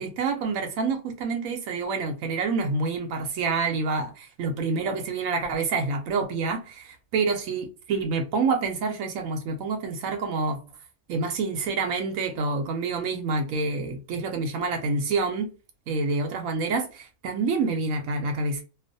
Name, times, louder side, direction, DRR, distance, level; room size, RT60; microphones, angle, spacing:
voice 1, 0.0-10.6 11.1-15.5 15.9-18.6, right 4 dB, 90° right, 1.0 m, -27 dB
2.4 x 2.4 x 2.6 m
omnidirectional pair, 1.4 m